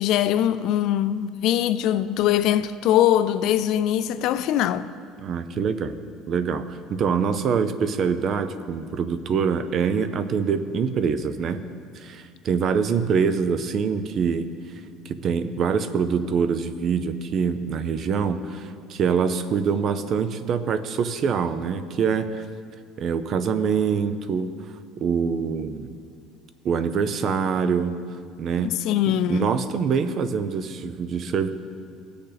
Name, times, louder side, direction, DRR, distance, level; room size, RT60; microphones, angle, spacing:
voice 1, 0.0-4.9 28.6-29.5, left 11 dB, 55° left, 0.3 m, -22 dB
voice 2, 5.2-6.0 6.3-11.6 12.0-14.5 15.1-22.4 23.0-24.5 25.0-25.9 26.6-28.0 28.4-28.7 29.1-31.5, right 6 dB, 35° right, 0.5 m, -24 dB
18.5 x 6.6 x 4.0 m
cardioid pair, 165°, 0 cm